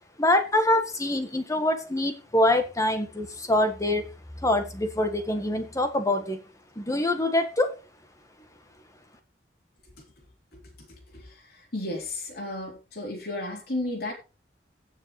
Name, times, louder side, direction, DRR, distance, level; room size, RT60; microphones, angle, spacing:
voice 1, 0.2-4.1 4.4-6.4 6.8-7.8, left 1 dB, 20° left, 1.4 m, -25 dB
voice 2, 11.7-14.1, left 1 dB, 60° left, 3.7 m, -33 dB
17.0 x 6.4 x 3.2 m
head